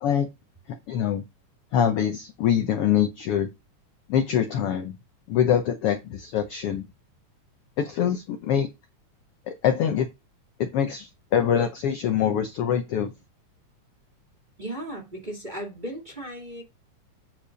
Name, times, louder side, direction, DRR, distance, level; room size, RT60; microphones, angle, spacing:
voice 1, 0.9-1.2 1.7-3.5 4.1-5.0 5.3-6.9 7.8-8.7 9.5-10.1 10.6-13.1, left 9 dB, 70° left, 1.4 m, -24 dB
voice 2, 14.6-16.6, right 1 dB, 15° right, 2.1 m, -36 dB
8.5 x 4.5 x 5.1 m
omnidirectional pair, 3.5 m